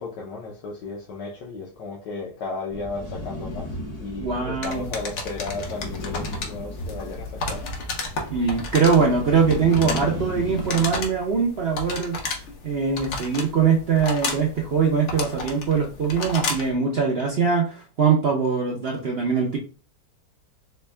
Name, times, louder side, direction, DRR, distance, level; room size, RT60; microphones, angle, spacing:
voice 1, 0.0-7.7, left 3 dB, 85° left, 1.4 m, -34 dB
sound 1, 2.7-11.1, left 1 dB, 35° left, 0.6 m, -35 dB
voice 2, 4.2-4.9 8.3-12.2 12.6-19.6, right 5 dB, 55° right, 0.6 m, -22 dB
sound 2, 4.6-16.8, left 3 dB, 55° left, 0.9 m, -33 dB
4.4 x 2.2 x 3.3 m
omnidirectional pair, 1.8 m